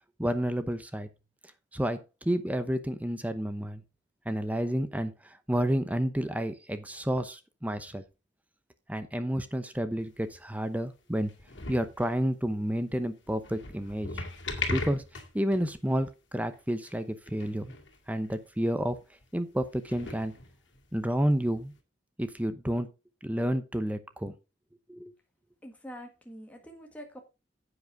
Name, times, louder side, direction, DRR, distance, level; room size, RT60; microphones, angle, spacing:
voice 1, 0.2-1.1 1.7-3.8 4.3-8.0 8.9-11.3 11.7-14.2 14.7-15.0 15.3-17.7 18.1-19.0 19.3-20.3 20.9-21.7 22.2-22.9 23.2-24.3 24.9-25.1, equal, 10° right, 0.8 m, -30 dB
sound 1, 10.0-10.6 11.2-12.1 13.3-15.7 16.0-16.1 16.5-16.6 16.8-17.0 17.3-18.0 18.2-18.4 19.2-19.3 19.8-20.9 21.8-21.9, left 3 dB, 80° left, 2.3 m, -38 dB
voice 2, 25.6-27.2, equal, 10° left, 1.7 m, -45 dB
10.5 x 8.1 x 3.6 m
head